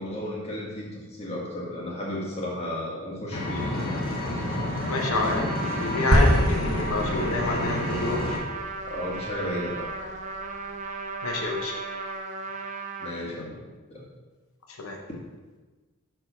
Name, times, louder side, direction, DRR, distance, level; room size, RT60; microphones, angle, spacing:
voice 1, 0.0-3.9 8.9-9.9 13.0-13.6 13.9-14.1, left 1 dB, 30° left, -3 dB, 1.6 m, -33 dB
Engine, 3.3-8.4, left 1 dB, 45° left, 1.5 m, -30 dB
Trumpet, 4.6-13.1, right 4 dB, 35° right, 0.6 m, -37 dB
voice 2, 4.9-8.4 11.2-11.8 14.8-15.0, left 2 dB, 85° left, 1 dB, 0.9 m, -28 dB
sound 1, 6.1-10.5, equal, 75° right, 1.1 m, -27 dB
6.3 x 4.6 x 5.6 m, 1.3 s
head